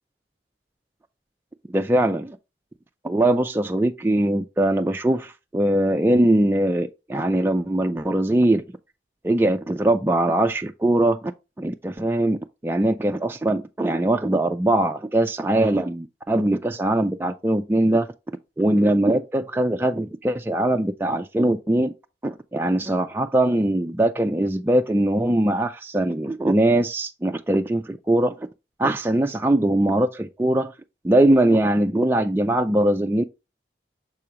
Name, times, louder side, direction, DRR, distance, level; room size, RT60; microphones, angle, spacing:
voice 1, 1.7-2.4 3.0-8.6 9.2-11.3 11.6-18.1 18.6-21.9 22.2-28.3 28.8-30.7 31.0-33.2, right 1 dB, 10° right, 0.3 m, -21 dB
6.7 x 4.9 x 2.9 m
head